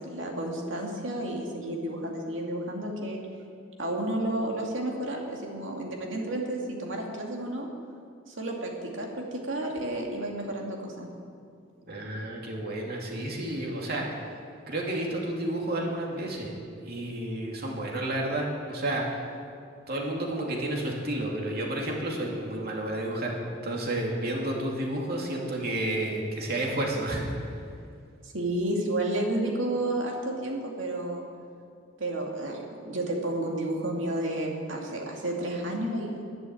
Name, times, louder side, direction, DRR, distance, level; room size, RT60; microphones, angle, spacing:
voice 1, 0.0-3.2 3.8-7.7 8.3-8.7 9.0-11.1 28.2-31.2 32.0-36.2, right 1 dB, 70° right, 0 dB, 2.5 m, -31 dB
voice 2, 11.8-14.2 14.7-16.5 16.8-19.2 19.9-27.4, right 1 dB, 55° right, -1 dB, 2.7 m, -31 dB
11.5 x 10.5 x 8.5 m, 2.3 s
head